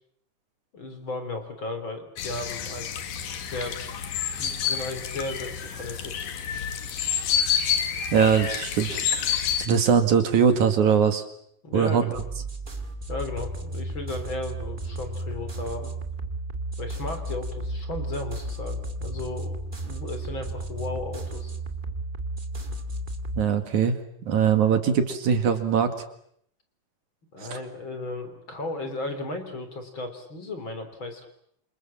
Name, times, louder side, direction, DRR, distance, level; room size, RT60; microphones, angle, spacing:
voice 1, 0.7-2.9 3.4-3.8 4.3-6.2 11.6-12.2 13.1-15.9 16.8-19.5 19.8-21.5 27.3-31.3, left 2 dB, 35° left, 7 dB, 4.2 m, -35 dB
sound 1, 2.2-9.7, left 8 dB, 80° left, 3.6 m, -29 dB
voice 2, 8.1-11.2 11.7-12.1 23.4-24.0 24.3-25.9 27.4-27.6, right 7 dB, 65° right, 7 dB, 3.3 m, -22 dB
sound 2, 12.1-23.4, right 1 dB, 20° right, 1.7 m, -33 dB
28.0 x 27.5 x 7.5 m, 0.69 s
omnidirectional pair, 3.8 m